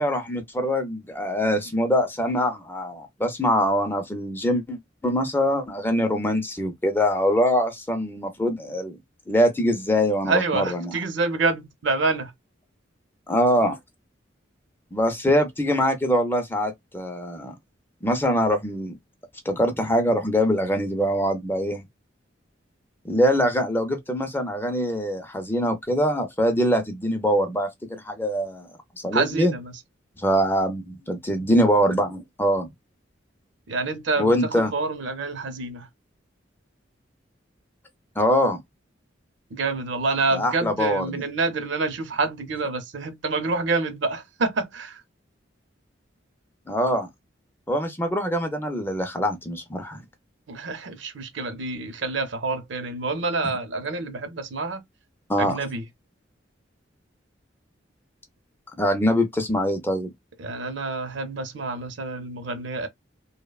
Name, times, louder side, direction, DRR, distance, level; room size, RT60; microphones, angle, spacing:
voice 1, 0.0-9.0 9.3-10.9 13.3-13.8 14.9-17.5 18.0-18.9 19.5-21.8 23.0-28.7 29.0-29.5 30.2-32.7 34.2-34.7 38.2-38.6 40.3-41.2 46.7-47.1 47.7-50.0 55.3-55.6 58.8-60.1, equal, 10° left, 0.4 m, -23 dB
voice 2, 10.3-12.3 29.1-29.8 33.7-35.9 39.5-45.0 50.5-54.8 55.4-55.8 60.4-62.9, right 3 dB, 70° right, 0.6 m, -27 dB
2.9 x 2.1 x 2.3 m
head